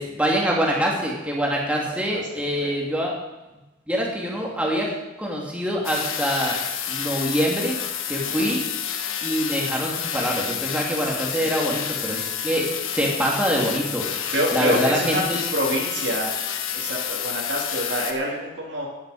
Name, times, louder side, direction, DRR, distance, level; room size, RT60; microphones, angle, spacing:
voice 1, 0.0-3.1 3.9-4.9 5.2-6.6 6.9-7.8 8.1-8.7 9.2-15.4, equal, 5° right, -3 dB, 2.7 m, -25 dB
voice 2, 1.9-2.7 8.3-8.5 11.3-11.5 14.3-15.2 15.5-16.3 16.7-18.9, equal, 60° right, -3 dB, 2.6 m, -27 dB
sound 1, 5.8-18.1, left 8 dB, 80° left, 1.3 m, -29 dB
14.0 x 11.0 x 5.0 m, 1.0 s
head